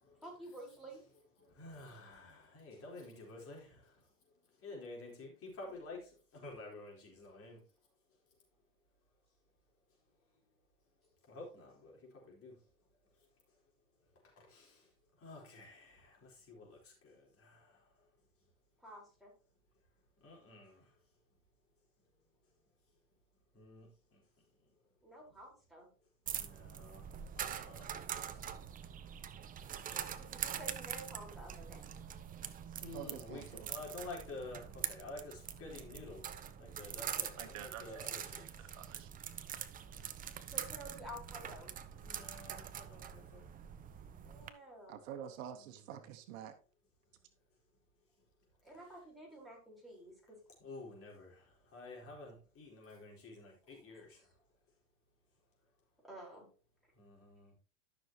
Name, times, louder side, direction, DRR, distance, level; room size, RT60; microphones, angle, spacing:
voice 1, 0.2-1.0 18.8-19.3 25.0-25.9 29.9-31.9 40.5-41.7 44.2-45.0 48.6-50.4 56.0-56.4, right 1 dB, ahead, -3 dB, 4.5 m, -51 dB
voice 2, 1.1-3.8 4.6-7.6 11.3-12.0 12.2-12.5 14.4-14.8 15.2-17.8 20.2-20.8 23.5-24.2 26.4-27.0 27.4-28.5 32.8-36.3 36.6-38.4 42.0-43.5 45.5-46.1 50.6-51.5 51.7-54.2 57.0-57.5, left 2 dB, 35° left, -1 dB, 4.1 m, -51 dB
sound 1, 26.3-44.5, right 9 dB, 20° right, 0.6 m, -44 dB
voice 3, 32.9-33.7 37.4-37.8 38.6-39.1 44.9-46.5, right 9 dB, 65° right, 8 dB, 1.2 m, -47 dB
12.5 x 6.3 x 2.9 m, 0.36 s
hypercardioid pair, 110°, 42 cm